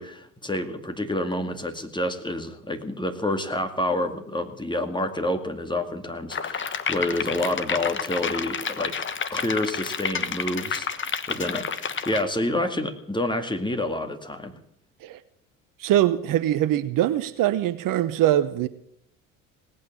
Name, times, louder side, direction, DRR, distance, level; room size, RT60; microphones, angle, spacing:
voice 1, 0.0-9.0 9.3-14.6, left 1 dB, 10° left, 2.2 m, -28 dB
sound 1, 6.3-12.2, left 6 dB, 30° left, 1.3 m, -30 dB
voice 2, 15.8-18.7, right 12 dB, 55° right, 0.9 m, -22 dB
18.5 x 8.8 x 8.6 m
hypercardioid pair, 60°, 40 cm